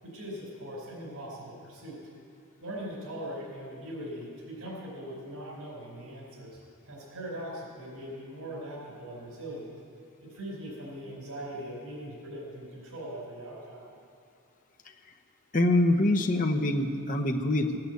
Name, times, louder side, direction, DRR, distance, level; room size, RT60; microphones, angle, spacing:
voice 1, 0.0-2.0 2.6-6.6 6.8-9.7 10.2-13.9, right 1 dB, 85° right, -5 dB, 4.5 m, -40 dB
voice 2, 15.5-17.8, left 1 dB, 35° left, 3 dB, 1.0 m, -25 dB
17.0 x 8.8 x 8.2 m, 2.5 s
head